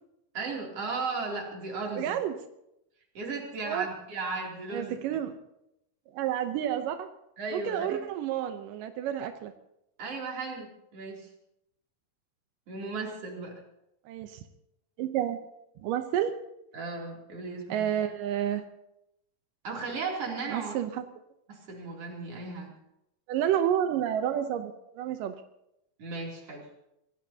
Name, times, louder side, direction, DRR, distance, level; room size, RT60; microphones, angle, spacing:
voice 1, 0.3-2.1 3.2-5.0 7.4-8.0 10.0-11.3 12.7-13.6 16.7-17.9 19.6-20.7 21.5-22.7 26.0-26.7, right 4 dB, 50° right, -1 dB, 3.9 m, -35 dB
voice 2, 2.0-2.3 3.6-3.9 4.7-5.4 6.1-7.1 7.5-9.5 14.1-14.4 15.0-15.4 15.8-16.3 17.7-18.6 20.5-21.0 23.3-25.4, right 10 dB, 90° right, 8 dB, 2.5 m, -30 dB
25.0 x 17.5 x 2.8 m, 0.83 s
omnidirectional pair, 3.7 m